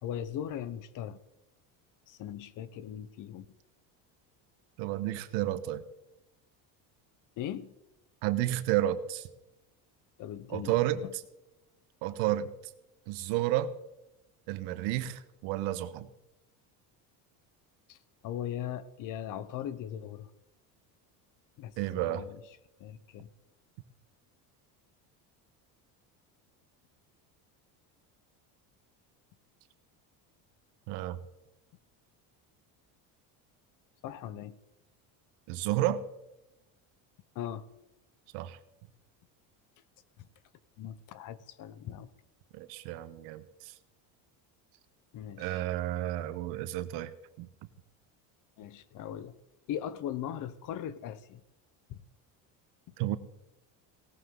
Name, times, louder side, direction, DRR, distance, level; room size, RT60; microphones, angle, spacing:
voice 1, 0.0-1.2 2.1-3.5 7.4-7.7 10.2-11.1 17.9-18.0 18.2-20.3 21.6-22.4 22.8-23.3 34.0-34.6 37.3-37.7 40.2-40.3 40.8-42.1 45.1-45.6 48.6-49.3 49.7-51.4 51.9-52.0, left 10 dB, 50° left, 16 dB, 0.9 m, -39 dB
voice 2, 4.8-5.8 8.2-9.3 10.5-11.0 12.0-12.5 13.1-13.7 14.5-16.1 21.8-22.2 30.9-31.2 35.5-36.0 38.3-38.6 42.5-43.7 45.4-47.5 53.0-53.2, right 14 dB, 80° right, 13 dB, 1.2 m, -31 dB
18.0 x 13.5 x 3.8 m, 0.93 s
cardioid pair, 150°, 41 cm